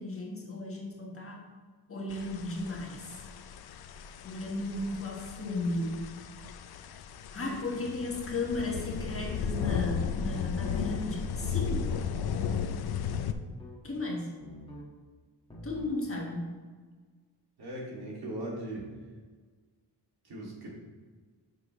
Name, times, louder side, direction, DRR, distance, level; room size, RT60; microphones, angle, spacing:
voice 1, 0.0-1.4 1.9-3.2 4.2-6.1 7.3-11.9 13.8-14.4 15.6-16.5, left 2 dB, 35° left, 0 dB, 1.3 m, -35 dB
sound 1, 2.1-13.3, left 6 dB, 65° left, 0.5 m, -35 dB
sound 2, 8.9-9.5 10.0-10.5 11.1-11.7 13.3-13.8 14.4-14.9 15.5-16.0, equal, 15° left, 1.5 m, -46 dB
voice 2, 17.6-18.9 20.2-20.7, right 1 dB, 65° right, -3 dB, 2.3 m, -39 dB
9.5 x 6.5 x 3.1 m, 1.5 s
wide cardioid pair, 160°, 40 cm